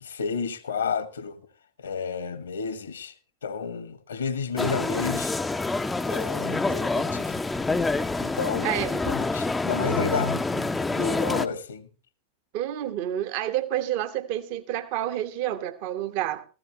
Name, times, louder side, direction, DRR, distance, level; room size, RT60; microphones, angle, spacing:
voice 1, 0.0-1.4 1.8-3.1 3.4-5.3 6.0-7.4 8.1-11.9, left 5 dB, 70° left, 1.3 m, -31 dB
sound 1, 4.6-11.5, left 3 dB, 10° left, 0.6 m, -27 dB
voice 2, 12.5-16.5, right 12 dB, 45° right, 1.2 m, -29 dB
16.0 x 14.5 x 2.9 m
figure-of-eight pair, 90°, 0 cm